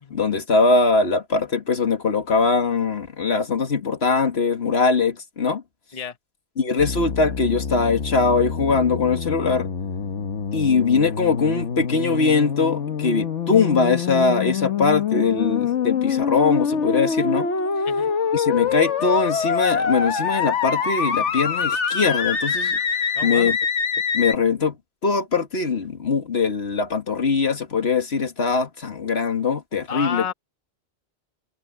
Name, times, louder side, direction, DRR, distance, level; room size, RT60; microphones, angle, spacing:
voice 1, 0.1-5.6 6.6-9.7 10.5-17.5 18.3-22.8 23.2-23.6 24.1-24.8 25.0-30.2, left 4 dB, 65° left, 1.9 m, -21 dB
sound 1, 6.8-24.3, left 6 dB, 85° left, 1.5 m, -25 dB
voice 2, 23.2-23.5 29.9-30.3, left 7 dB, 35° left, 1.1 m, -30 dB
omnidirectional pair, 1.2 m